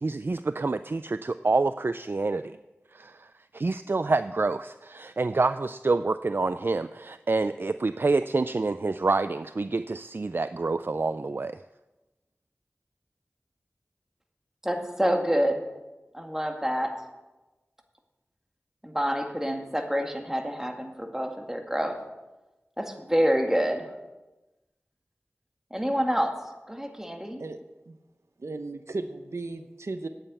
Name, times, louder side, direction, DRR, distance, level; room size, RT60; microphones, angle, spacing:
voice 1, 0.0-2.4 2.9-3.3 3.5-11.6, right 3 dB, 50° right, 12 dB, 0.3 m, -27 dB
voice 2, 14.6-15.6 16.1-17.0 18.8-22.0 22.8-23.9 25.7-26.4 26.7-27.4, equal, 10° right, 3 dB, 1.9 m, -27 dB
voice 3, 28.4-30.1, right 3 dB, 80° right, 8 dB, 0.7 m, -35 dB
9.1 x 8.8 x 8.3 m, 1.1 s
wide cardioid pair, 40°, 5 cm